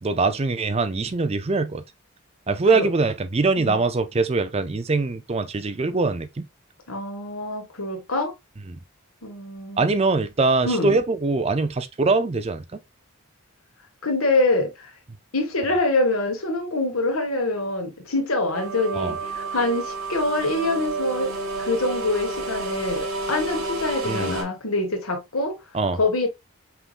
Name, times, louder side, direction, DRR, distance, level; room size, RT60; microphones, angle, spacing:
voice 1, 0.0-1.8 2.5-6.5 8.7-8.8 9.8-12.8 18.9-19.2 24.1-24.3 25.7-26.0, right 3 dB, 30° right, 0.4 m, -23 dB
voice 2, 6.9-8.3 9.2-10.0 10.6-11.0 14.0-14.9 15.3-21.3 21.6-25.6 25.9-26.3, left 2 dB, 80° left, 1.7 m, -25 dB
sound 1, 18.5-24.4, right 2 dB, 85° right, 2.5 m, -30 dB
5.7 x 3.5 x 2.4 m
head